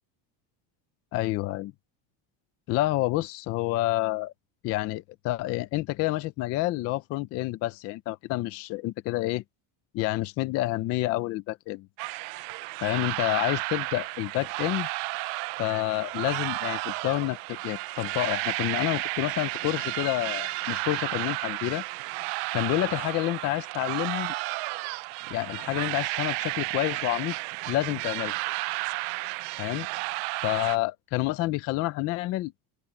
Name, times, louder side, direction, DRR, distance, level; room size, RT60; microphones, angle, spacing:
voice 1, 1.1-1.7 2.7-4.3 4.6-9.4 9.9-11.9 12.8-14.9 15.6-21.8 22.5-24.3 25.3-27.4 27.7-28.4 29.6-29.9 30.4-32.5, left 17 dB, 35° left, 0.4 m, -29 dB
sound 1, 12.0-30.8, right 25 dB, 70° right, 0.6 m, -32 dB
sound 2, 20.3-21.2, right 9 dB, 30° right, 4.1 m, -46 dB
open air
cardioid pair, 175°, 48 cm